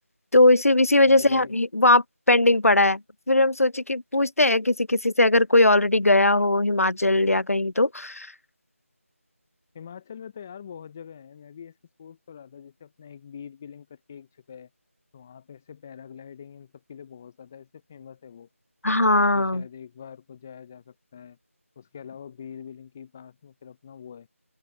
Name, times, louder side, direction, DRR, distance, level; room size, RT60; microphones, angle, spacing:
voice 1, 0.3-3.0 3.3-8.3 18.8-19.6, left 2 dB, 90° left, 0.6 m, -19 dB
voice 2, 1.1-1.6 9.7-14.7 15.1-18.5 18.9-21.4 21.8-24.3, left 7 dB, 10° left, 0.5 m, -44 dB
open air
figure-of-eight pair, 165°, 8 cm